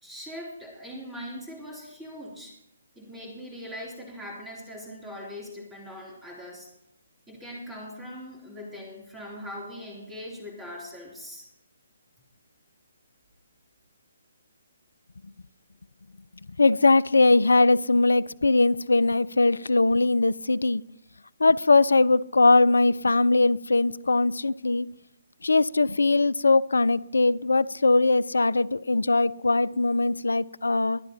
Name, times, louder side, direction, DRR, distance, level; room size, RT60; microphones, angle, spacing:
voice 1, 0.0-2.6 2.9-6.7 7.3-11.5, equal, 5° right, 3.0 m, -41 dB
voice 2, 16.6-20.8 21.4-24.9 25.4-31.0, left 3 dB, 65° left, 0.4 m, -21 dB
22.5 x 10.5 x 2.8 m
figure-of-eight pair, 135°, 0 cm